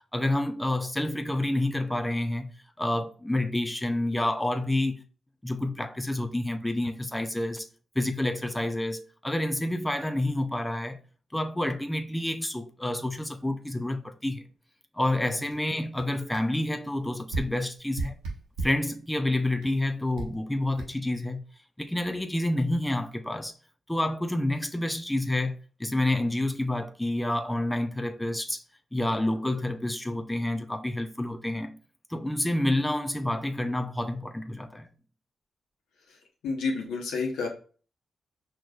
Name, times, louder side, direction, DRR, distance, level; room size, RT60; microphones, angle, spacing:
voice 1, 0.1-5.0 5.4-7.7 8.0-11.0 11.3-14.4 14.9-18.1 18.6-21.4 21.8-23.5 23.9-28.6 28.9-31.8 32.1-34.9, left 1 dB, 10° left, 0.5 m, -29 dB
sound 1, 15.5-15.6 16.0-16.1 16.3-16.5 17.3-18.9 19.6-19.7 20.1-20.4 20.8-20.9, right 3 dB, 90° right, 1.0 m, -34 dB
voice 2, 36.4-37.5, left 4 dB, 80° left, 1.1 m, -29 dB
4.6 x 3.0 x 2.3 m
supercardioid pair, 45°, 0 cm